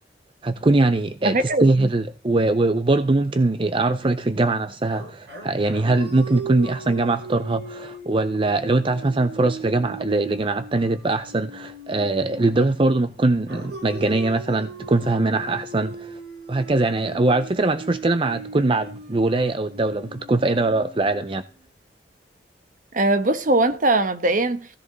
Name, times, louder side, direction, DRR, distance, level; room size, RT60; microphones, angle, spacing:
voice 1, 0.4-16.2 16.5-21.4, right 2 dB, 30° right, 0.6 m, -22 dB
voice 2, 1.2-1.9 22.9-24.7, right 2 dB, 45° right, 1.2 m, -21 dB
sound 1, 4.9-12.9 13.5-21.6, right 3 dB, 65° right, 5.6 m, -39 dB
16.0 x 14.0 x 4.0 m
head